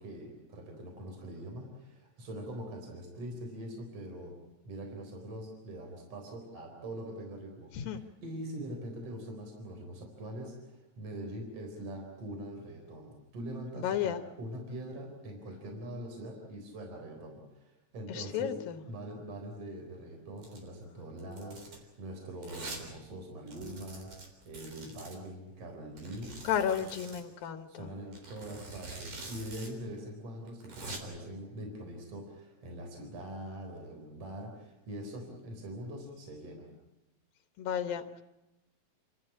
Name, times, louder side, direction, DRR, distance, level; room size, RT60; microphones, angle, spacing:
voice 1, 0.0-4.3 4.7-26.3 26.8-26.9 27.4-36.7, right 1 dB, 45° right, 1 dB, 5.1 m, -43 dB
voice 2, 13.8-14.2 18.1-18.8 26.4-27.9 37.6-38.2, left 9 dB, 75° left, 8 dB, 2.8 m, -33 dB
Domestic sounds home sounds, 20.4-20.7 21.2-21.8 22.4-22.8 23.1-23.2 23.5-25.2 26.0-27.2 28.1-29.7 29.9-30.0 30.5-31.0, right 3 dB, 60° right, 5.2 m, -45 dB
29.0 x 14.0 x 10.0 m, 0.97 s
omnidirectional pair, 4.2 m